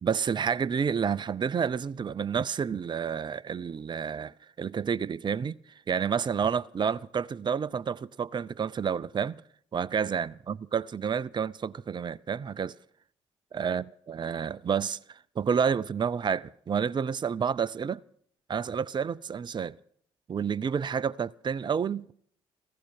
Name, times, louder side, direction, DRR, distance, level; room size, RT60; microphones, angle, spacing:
voice 1, 0.0-9.4 9.7-12.7 13.5-18.0 18.5-19.8 20.3-22.1, right 7 dB, 35° right, 0.5 m, -30 dB
15.5 x 15.0 x 5.7 m
hypercardioid pair, 45°, 14 cm